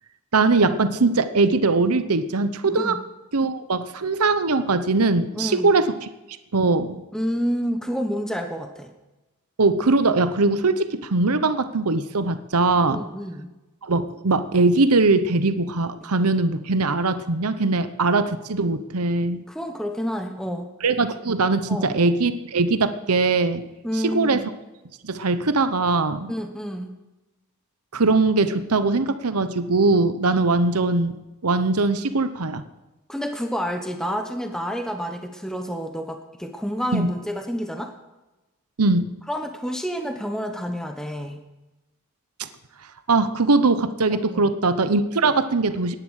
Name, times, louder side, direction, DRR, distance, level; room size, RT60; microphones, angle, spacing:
voice 1, 0.3-3.0 3.3-6.1 6.5-7.0 9.6-13.0 13.8-19.4 20.8-23.6 24.0-24.4 25.0-26.3 27.9-31.2 31.4-32.6 36.9-37.1 38.8-39.1 42.4-42.5 43.1-45.9, right 3 dB, 90° right, 11 dB, 1.0 m, -21 dB
voice 2, 2.6-3.0 5.3-5.8 7.1-8.9 12.9-13.5 19.5-20.7 21.7-21.9 23.8-24.5 26.3-26.9 33.1-37.9 39.3-41.4 44.3-44.5, equal, 5° left, 5 dB, 1.1 m, -29 dB
17.5 x 11.0 x 6.5 m, 1.1 s
head